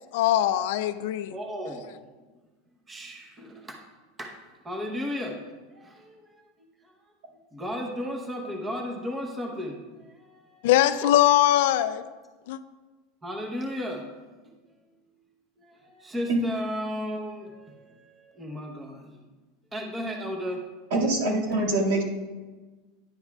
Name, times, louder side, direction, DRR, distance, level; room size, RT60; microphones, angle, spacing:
voice 1, 0.1-1.3 10.6-12.1 12.5-12.6, left 13 dB, 65° left, 0.4 m, -21 dB
voice 2, 1.3-2.1 2.9-3.8 4.2-4.3 4.6-6.9 7.5-10.7 11.0-11.1 13.2-14.1 14.7-15.0 15.6-19.3 19.7-20.6, equal, 10° right, 0.9 m, -35 dB
voice 3, 20.9-22.0, right 2 dB, 75° right, 2.1 m, -24 dB
10.5 x 7.9 x 2.3 m
supercardioid pair, 165°, 0 cm